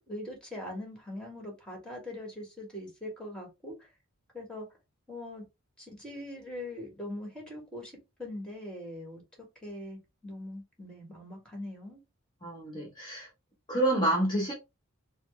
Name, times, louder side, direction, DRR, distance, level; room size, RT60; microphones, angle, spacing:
voice 1, 0.0-3.9 4.3-4.7 5.1-5.5 5.8-7.9 8.2-12.0, left 1 dB, 5° left, 1.4 m, -42 dB
voice 2, 12.4-13.3 13.7-14.5, right 1 dB, 20° left, 1.0 m, -28 dB
4.1 x 2.0 x 3.2 m
head